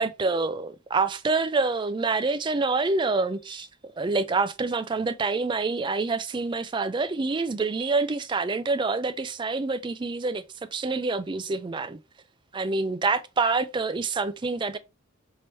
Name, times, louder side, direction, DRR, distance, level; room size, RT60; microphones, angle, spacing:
voice 1, 0.0-3.7 4.0-10.4 10.7-12.0 12.5-14.8, right 3 dB, 25° right, 0.3 m, -26 dB
4.6 x 3.0 x 2.9 m
head